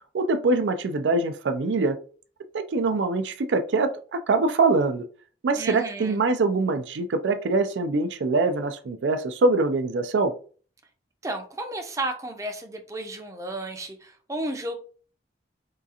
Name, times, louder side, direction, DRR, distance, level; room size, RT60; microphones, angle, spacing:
voice 1, 0.1-2.0 2.5-5.1 5.4-10.3, right 3 dB, 90° right, 9 dB, 0.4 m, -23 dB
voice 2, 5.6-6.2 11.2-14.7, right 2 dB, 15° right, 4 dB, 0.5 m, -33 dB
3.6 x 2.4 x 2.7 m, 0.40 s
head